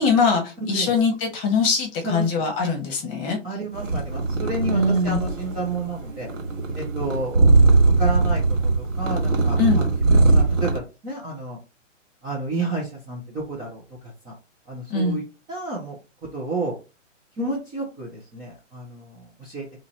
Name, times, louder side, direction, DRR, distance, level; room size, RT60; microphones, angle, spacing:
voice 1, 0.0-3.4 4.7-5.2 9.6-9.8 14.9-15.2, left 4 dB, 20° left, 2 dB, 1.0 m, -22 dB
voice 2, 0.6-1.0 2.0-2.4 3.4-6.3 6.7-11.6 12.2-14.3 14.7-15.2 15.5-16.0 16.3-16.7 17.4-19.7, right 3 dB, 10° right, -5 dB, 0.5 m, -31 dB
sound 1, 3.7-10.8, right 3 dB, 75° right, 1.9 m, -20 dB
3.0 x 2.4 x 4.1 m, 0.31 s
hypercardioid pair, 140°, 38 cm